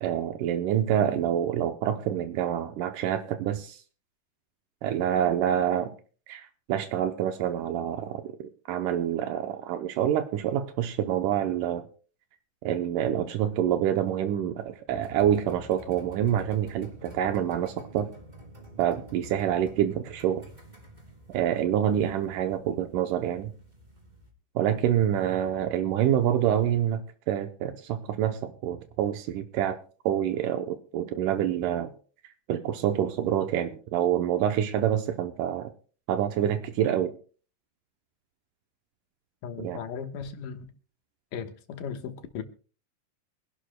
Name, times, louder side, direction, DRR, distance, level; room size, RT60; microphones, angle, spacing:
voice 1, 0.0-3.8 4.8-6.0 6.3-11.8 12.6-18.1 18.8-20.4 21.3-23.5 24.6-29.8 30.1-31.9 32.5-35.7 36.1-37.1 39.6-39.8, right 10 dB, 80° right, 2.3 m, -27 dB
sound 1, 14.9-24.3, equal, 15° right, 2.1 m, -48 dB
voice 2, 39.4-40.7 41.3-42.4, left 7 dB, 85° left, 2.8 m, -37 dB
25.5 x 11.5 x 2.2 m
omnidirectional pair, 3.7 m